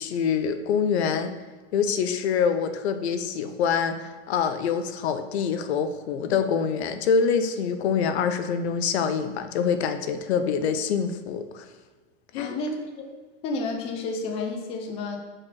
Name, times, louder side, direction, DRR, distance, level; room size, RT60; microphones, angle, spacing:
voice 1, 0.0-1.3 1.7-11.6 12.3-12.5, left 6 dB, 70° left, 9 dB, 0.8 m, -25 dB
voice 2, 12.4-12.9 13.4-15.2, left 3 dB, 20° left, 3 dB, 0.5 m, -30 dB
6.1 x 5.0 x 5.9 m, 1.4 s
supercardioid pair, 175°, 34 cm